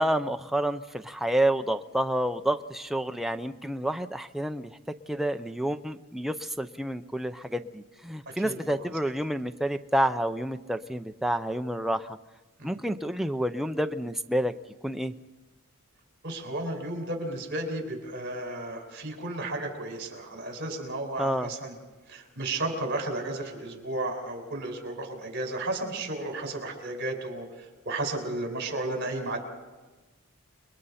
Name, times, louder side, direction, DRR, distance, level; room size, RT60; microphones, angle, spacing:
voice 1, 0.0-4.7 5.1-12.2 12.6-14.5 14.8-15.1 21.2-21.5, right 1 dB, ahead, 7 dB, 0.6 m, -29 dB
voice 2, 8.4-8.8 12.6-12.8 16.2-21.7 22.1-27.5 27.8-29.4, right 2 dB, 50° right, 3 dB, 4.8 m, -33 dB
29.5 x 22.0 x 4.3 m, 1.2 s
head